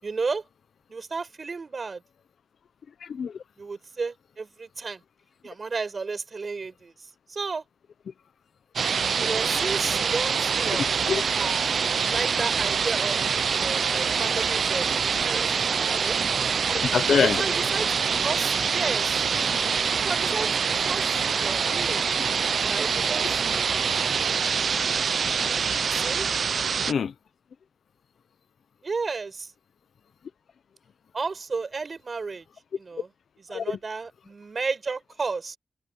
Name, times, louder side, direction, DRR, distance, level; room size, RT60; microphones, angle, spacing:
voice 1, 0.0-0.4 0.9-2.0 3.6-5.0 5.4-6.9 7.3-7.6 9.2-10.8 11.4-13.2 13.5-16.2 17.3-19.2 20.0-21.0 21.3-22.0 22.6-23.6 25.8-26.3 28.8-29.5 31.1-32.4 32.8-33.1 33.5-35.6, right 4 dB, 40° right, 4.7 m, -33 dB
voice 2, 3.0-3.4 10.7-11.2 16.7-17.4 26.9-27.1 33.5-33.8, left 6 dB, 70° left, 0.7 m, -25 dB
sound 1, 8.8-26.9, right 6 dB, 60° right, 0.5 m, -25 dB
open air
wide cardioid pair, 155°, 0 cm